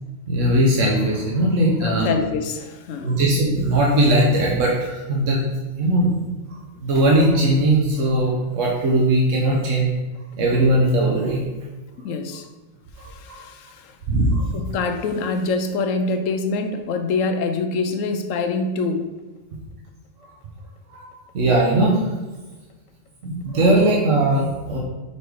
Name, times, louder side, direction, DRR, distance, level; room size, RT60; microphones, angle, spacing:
voice 1, 0.3-2.1 3.0-5.5 5.8-6.2 6.5-9.9 10.4-11.4 13.0-13.5 14.1-14.5 20.9-21.1 21.3-22.0 23.2-24.8, right 1 dB, 75° right, -3 dB, 1.3 m, -19 dB
voice 2, 1.8-3.2 12.0-12.5 13.1-14.0 14.5-19.1, left 4 dB, 90° left, 7 dB, 1.0 m, -25 dB
5.1 x 4.3 x 4.6 m, 1.2 s
omnidirectional pair, 1.3 m